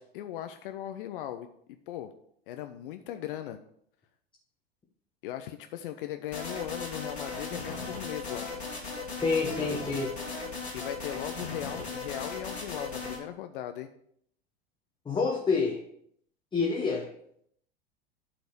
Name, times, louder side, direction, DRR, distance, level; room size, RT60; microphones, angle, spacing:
voice 1, 0.1-1.5 1.9-2.1 2.5-3.6 5.2-8.5 10.7-13.9, left 11 dB, 55° left, 8 dB, 0.6 m, -38 dB
sound 1, 6.3-13.2, left 3 dB, 90° left, 2.6 m, -37 dB
voice 2, 9.2-10.1 15.1-15.8 16.5-17.1, left 4 dB, 15° left, 0 dB, 1.1 m, -27 dB
8.5 x 4.0 x 6.7 m, 0.69 s
figure-of-eight pair, 85°, 32 cm